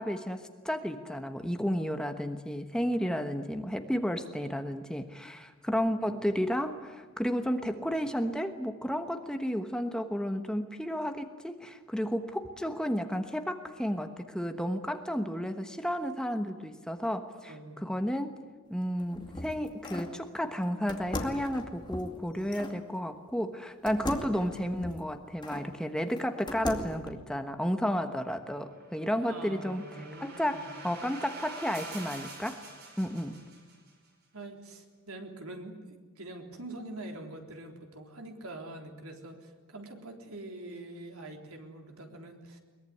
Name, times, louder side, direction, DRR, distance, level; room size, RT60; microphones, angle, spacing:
voice 1, 0.0-17.5 17.8-18.3 18.7-29.8 30.2-32.6 33.0-33.4, equal, 5° left, 7 dB, 1.2 m, -32 dB
voice 2, 17.4-17.8 29.2-30.7 34.3-42.6, right 2 dB, 75° right, 3 dB, 3.7 m, -44 dB
sound 1, 18.8-20.2 20.9-22.8 23.9-25.7 26.2-27.1, left 1 dB, 20° left, 2.3 m, -39 dB
sound 2, 28.6-33.9, right 3 dB, 45° right, 4.9 m, -46 dB
22.5 x 21.5 x 9.8 m, 1.4 s
head